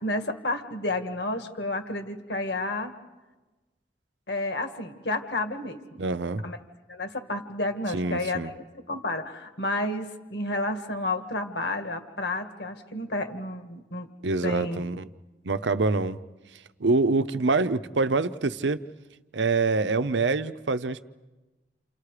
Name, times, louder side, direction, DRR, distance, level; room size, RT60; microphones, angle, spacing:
voice 1, 0.0-2.9 4.3-6.0 6.4-6.6 6.9-14.1 14.4-14.8, left 2 dB, 70° left, 6 dB, 1.9 m, -31 dB
voice 2, 6.0-6.4 7.9-8.5 14.2-15.1 15.4-16.2 16.8-18.8 19.3-21.0, right 3 dB, 80° right, 13 dB, 0.8 m, -25 dB
29.5 x 29.0 x 5.0 m, 1.2 s
head